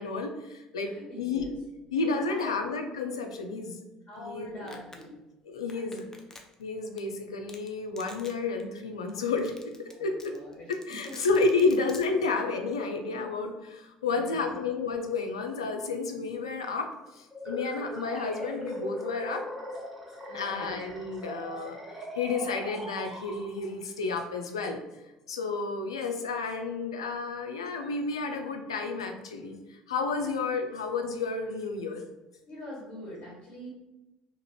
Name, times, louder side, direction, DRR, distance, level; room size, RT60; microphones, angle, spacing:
voice 1, 0.0-1.4 1.9-3.8 4.2-4.8 5.4-6.0 6.6-10.3 10.7-19.5 20.3-24.8 25.3-32.0, left 4 dB, 85° left, 4 dB, 0.3 m, -31 dB
voice 2, 0.8-1.5 2.3-2.5 4.1-5.2 5.7-6.2 9.9-11.2 11.6-11.7 14.0-14.5 20.3-20.8 30.2-30.3 32.5-33.7, equal, 45° left, -5 dB, 1.3 m, -44 dB
Domestic sounds home sounds, 4.7-5.0 5.7-6.6 7.0-7.1 7.5-7.7 8.0-8.3 8.6-8.7 9.1-9.2 9.4-9.9 10.2-12.0, left 2 dB, 20° left, 0.5 m, -47 dB
sound 1, 17.3-23.8, equal, 5° right, 0.9 m, -40 dB
2.8 x 2.4 x 3.0 m, 1.0 s
hypercardioid pair, 60°, 3 cm